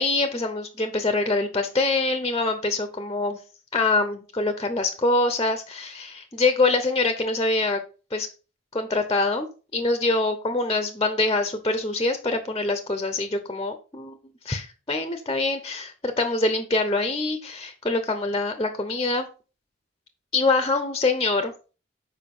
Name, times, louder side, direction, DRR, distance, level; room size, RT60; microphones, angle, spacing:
voice 1, 0.0-3.4 3.7-7.8 8.1-8.3 8.7-14.2 14.4-19.3 20.3-21.5, left 3 dB, 20° left, 8 dB, 0.8 m, -24 dB
7.3 x 5.2 x 5.4 m, 0.35 s
head